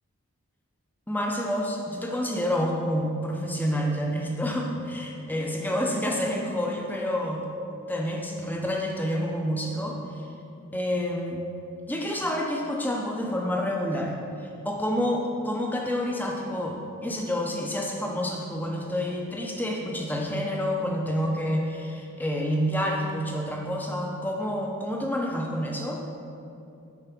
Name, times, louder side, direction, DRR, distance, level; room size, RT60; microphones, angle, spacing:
voice 1, 1.1-7.4 7.9-10.0 10.7-11.5 11.9-14.2 14.6-26.0, equal, 10° left, -1 dB, 0.9 m, -28 dB
10.0 x 4.8 x 6.1 m, 2.7 s
head